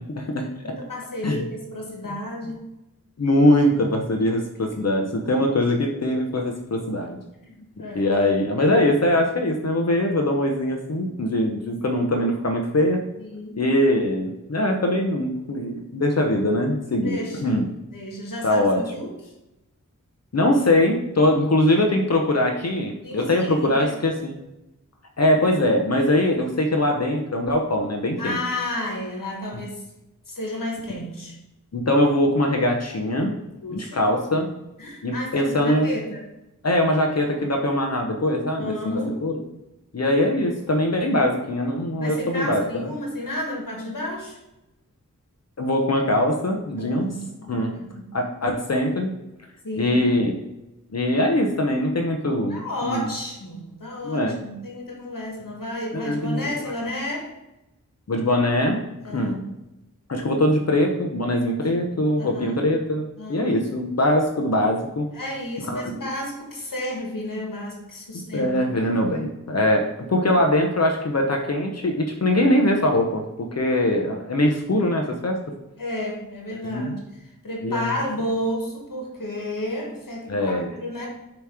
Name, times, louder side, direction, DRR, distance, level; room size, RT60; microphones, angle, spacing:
voice 1, 0.1-0.8 1.2-1.4 3.2-7.2 7.9-13.0 13.6-17.7 18.4-18.8 20.3-24.4 25.2-28.4 31.7-33.4 33.7-34.5 35.0-35.9 36.6-39.3 39.9-42.6 45.6-47.1 47.5-47.7 48.1-49.1 49.8-50.3 50.9-53.0 54.0-54.4 55.9-56.7 58.1-59.4 60.1-65.1 65.7-65.9 68.3-75.4 76.7-76.9 77.6-77.9 80.3-80.7, left 1 dB, 50° left, 2 dB, 0.7 m, -22 dB
voice 2, 0.6-2.6 4.2-4.3 4.7-4.8 7.4-8.1 13.2-13.6 17.0-17.6 17.9-19.1 23.0-23.9 28.2-29.8 30.3-31.4 33.6-34.1 34.8-36.2 38.6-39.2 42.0-44.4 46.7-48.1 49.6-50.0 52.5-57.3 59.0-59.4 62.2-62.6 63.2-63.6 65.1-68.5 75.8-77.0 77.4-81.1, left 1 dB, 90° left, -1 dB, 1.5 m, -32 dB
6.9 x 3.0 x 4.8 m, 0.94 s
wide cardioid pair, 70°, 32 cm